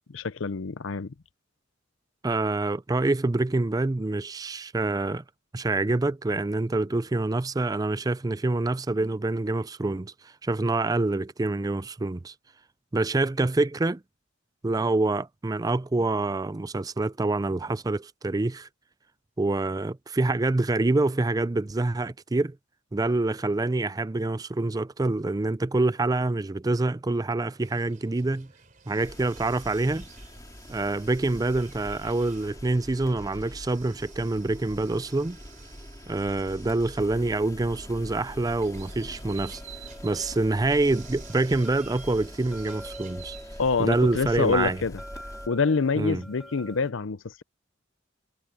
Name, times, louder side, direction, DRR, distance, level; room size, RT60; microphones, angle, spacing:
voice 1, 0.1-1.1 43.6-45.0 45.5-47.4, left 4 dB, 80° left, 0.6 m, -26 dB
voice 2, 2.2-5.2 5.5-10.1 10.4-12.3 12.9-14.0 14.6-18.7 19.4-22.6 22.9-28.5 28.9-30.0 30.7-35.4 36.1-39.6 40.0-43.4 43.8-44.8 46.0-46.2, right 2 dB, 20° right, 0.4 m, -26 dB
sound 1, 27.6-44.2, right 7 dB, 45° right, 3.5 m, -51 dB
sound 2, 29.0-45.5, equal, 20° left, 2.9 m, -44 dB
sound 3, 38.8-46.9, equal, ahead, 3.3 m, -47 dB
head